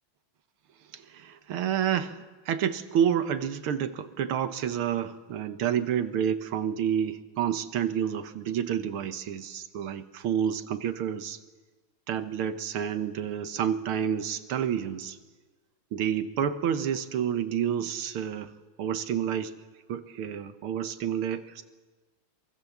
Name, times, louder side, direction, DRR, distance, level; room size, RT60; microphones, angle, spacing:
voice 1, 0.9-11.4 12.1-15.2 15.9-18.5 18.8-19.5 19.9-21.6, right 9 dB, 90° right, 9 dB, 2.0 m, -29 dB
26.5 x 24.0 x 7.2 m, 1.3 s
omnidirectional pair, 2.3 m